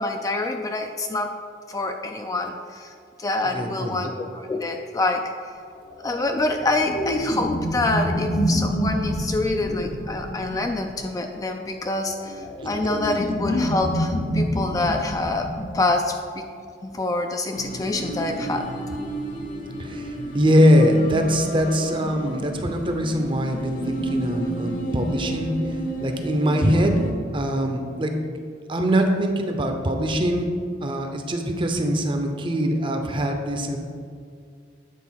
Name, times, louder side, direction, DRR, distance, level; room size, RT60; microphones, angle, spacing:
voice 1, 0.0-1.3 1.7-5.5 6.0-16.5 16.8-18.7, left 2 dB, 20° left, 4 dB, 0.3 m, -26 dB
voice 2, 3.5-4.0 12.6-12.7 19.8-25.5 26.0-26.9 27.3-28.1 28.7-30.5 30.8-33.8, equal, 30° right, 5 dB, 0.7 m, -22 dB
sound 1, 5.9-11.0 11.9-15.7, equal, 75° left, 1.0 m, -27 dB
sound 2, 17.5-27.1, right 1 dB, 45° left, 0.9 m, -32 dB
8.4 x 3.9 x 5.7 m, 2.2 s
head